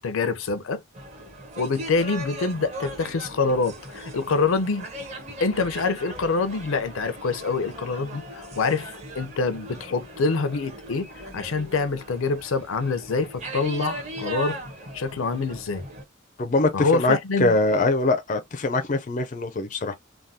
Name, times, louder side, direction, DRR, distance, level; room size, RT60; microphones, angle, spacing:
voice 1, 0.0-0.8 1.6-4.9 5.4-14.6 14.9-15.8 16.7-17.6, left 4 dB, 85° left, 0.6 m, -26 dB
sound 1, 0.9-16.0, right 1 dB, 35° right, 1.0 m, -39 dB
voice 2, 16.4-19.9, left 2 dB, 40° left, 0.4 m, -23 dB
3.5 x 2.2 x 2.6 m
head